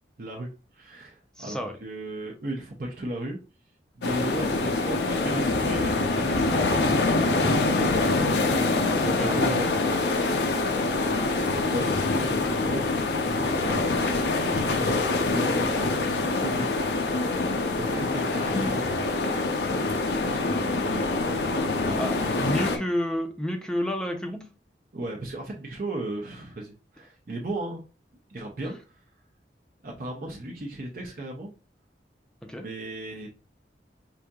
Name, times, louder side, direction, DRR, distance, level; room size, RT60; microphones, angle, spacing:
voice 1, 0.2-3.4 3.9-8.4 9.0-10.5 11.6-12.9 13.2-13.8 14.5-16.7 17.7-18.9 20.1-21.2 21.6-22.4 24.9-27.8 28.3-29.0 29.8-31.5 32.5-33.3, right 1 dB, 50° right, 0 dB, 0.6 m, -36 dB
voice 2, 1.4-1.8 9.0-9.4 22.0-24.4 32.4-32.7, equal, 5° left, 3 dB, 0.5 m, -30 dB
sound 1, 4.0-22.8, left 3 dB, 70° left, 0.6 m, -25 dB
4.9 x 2.7 x 2.3 m, 0.33 s
head